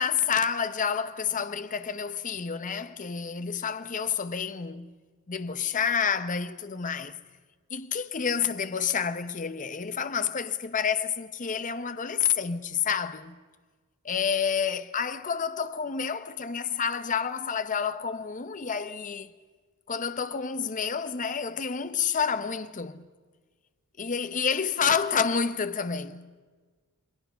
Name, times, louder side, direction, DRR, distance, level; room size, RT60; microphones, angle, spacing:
voice 1, 0.0-4.9 5.3-7.2 7.7-13.4 14.0-19.3 19.9-23.1 24.0-26.4, left 6 dB, 35° left, 0.8 m, -29 dB
28.0 x 21.5 x 5.7 m
head